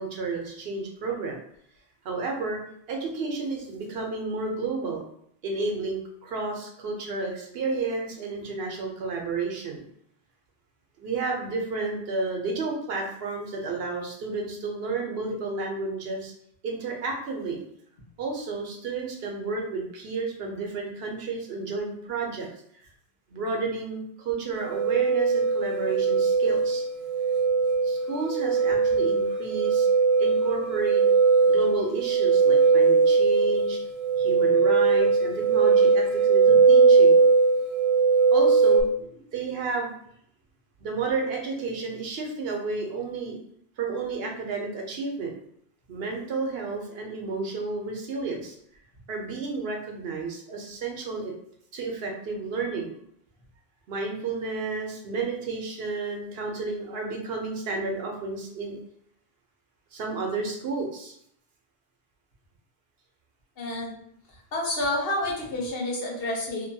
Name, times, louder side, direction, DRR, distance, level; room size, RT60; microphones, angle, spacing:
voice 1, 0.0-1.4 2.0-2.6 2.9-5.0 5.4-9.8 11.0-16.3 16.6-17.6 18.2-22.5 23.3-26.8 27.8-29.9 30.2-31.0 31.4-33.8 34.2-37.2 38.3-39.9 40.8-43.4 43.8-45.3 45.9-48.6 49.1-51.3 51.7-52.9 53.9-58.8 59.9-61.1, right 3 dB, 70° right, 0 dB, 0.8 m, -31 dB
sound 1, 24.6-38.8, right 4 dB, 40° right, 0.6 m, -20 dB
voice 2, 63.6-64.0 64.5-66.7, left 1 dB, 65° left, -3 dB, 1.0 m, -29 dB
2.8 x 2.2 x 2.6 m, 0.68 s
omnidirectional pair, 1.1 m